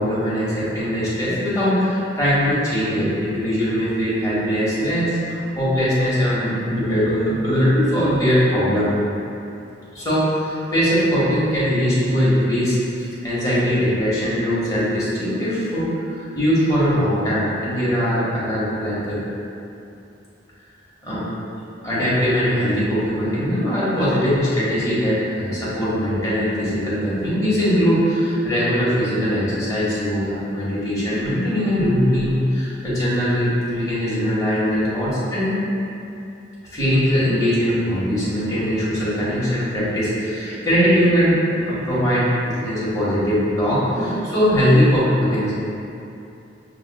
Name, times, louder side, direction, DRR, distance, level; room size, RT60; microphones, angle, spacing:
voice 1, 0.0-8.9 9.9-15.9 16.1-19.2 21.0-21.2 21.8-35.5 36.7-45.5, equal, 20° left, -10 dB, 1.1 m, -21 dB
6.1 x 2.4 x 2.2 m, 2.7 s
head